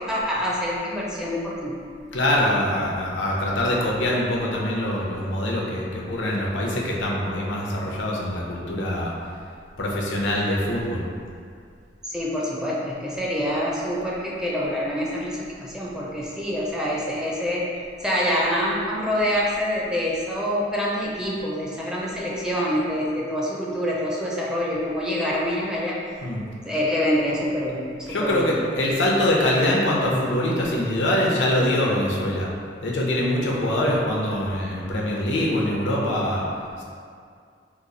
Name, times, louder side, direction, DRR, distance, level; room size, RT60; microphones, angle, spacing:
voice 1, 0.0-1.8 12.0-17.6 18.0-26.0 26.6-27.8 28.2-28.5, equal, 5° right, -5 dB, 0.4 m, -26 dB
voice 2, 2.1-9.1 9.8-11.1 26.2-26.4 28.0-32.5 32.8-36.4 36.8-36.9, left 1 dB, 85° left, -3 dB, 0.6 m, -24 dB
3.0 x 2.3 x 3.9 m, 2.2 s
head